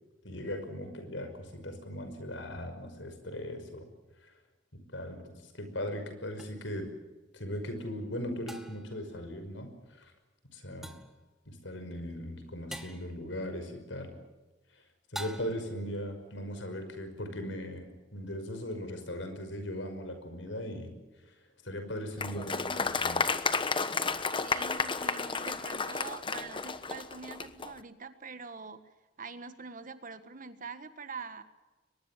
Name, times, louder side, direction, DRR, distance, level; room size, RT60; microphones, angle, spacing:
voice 1, 0.2-3.9 4.9-6.8 7.3-10.1 10.5-10.9 11.5-14.1 14.7-14.8 15.1-20.9 21.6-23.3, equal, 80° left, 8 dB, 5.6 m, -39 dB
sound 1, 6.4-6.5 8.5-9.0 10.8-11.2 12.7-13.1 15.1-15.8, equal, ahead, 2.3 m, -43 dB
Applause, 22.2-27.7, left 4 dB, 30° left, 1.2 m, -32 dB
voice 2, 24.4-28.8 29.2-31.4, right 4 dB, 45° right, 11 dB, 1.6 m, -44 dB
23.0 x 21.5 x 7.5 m, 1.2 s
head